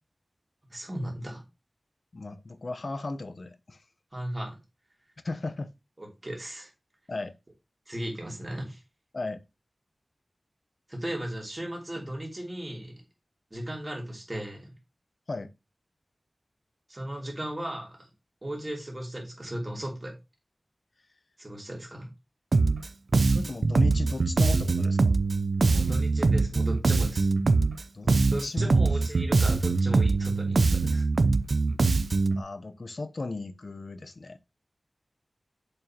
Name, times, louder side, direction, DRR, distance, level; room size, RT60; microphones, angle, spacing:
voice 1, 0.7-1.4 4.1-4.6 6.0-6.7 7.9-8.8 10.9-12.9 13.5-14.7 16.9-18.1 18.4-20.1 21.4-22.1 25.7-27.3 28.3-31.0, right 1 dB, 30° right, 3.1 m, -36 dB
voice 2, 2.1-3.8 5.2-5.7 7.1-7.3 9.1-9.4 15.3-15.5 23.2-25.2 27.9-28.1 28.4-28.8 32.3-34.4, left 3 dB, 65° left, 0.8 m, -36 dB
Bass guitar, 22.5-22.9 23.1-27.8 28.1-32.4, right 3 dB, 85° right, 0.4 m, -23 dB
7.2 x 5.5 x 2.9 m
wide cardioid pair, 80°, 0 cm